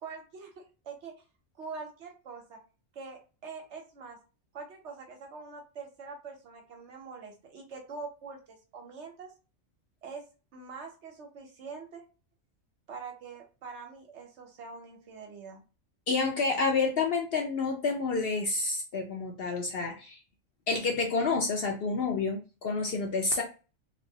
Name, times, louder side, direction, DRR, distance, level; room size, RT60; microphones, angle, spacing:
voice 1, 0.0-1.1 1.5-2.6 2.9-4.2 4.5-9.3 10.0-10.2 10.5-12.0 12.9-15.6, right 4 dB, 65° right, 3 dB, 1.0 m, -44 dB
voice 2, 16.1-20.2 20.7-23.4, left 4 dB, 60° left, 1 dB, 0.6 m, -29 dB
3.0 x 2.5 x 2.7 m, 0.33 s
omnidirectional pair, 1.4 m